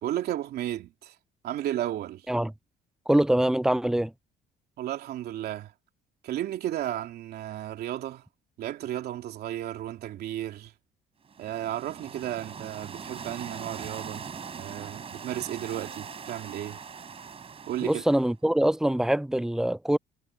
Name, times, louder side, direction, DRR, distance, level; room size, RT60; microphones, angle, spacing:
voice 1, 0.0-1.2 1.4-2.3 4.8-5.7 6.2-8.2 8.6-10.7 11.4-14.3 14.5-16.8 17.7-18.0, right 12 dB, 70° right, 2.9 m, -33 dB
voice 2, 3.1-4.1 17.8-20.0, right 1 dB, 5° right, 0.3 m, -24 dB
sound 1, 11.2-18.3, right 6 dB, 35° right, 4.4 m, -41 dB
cardioid pair, 110°, 17 cm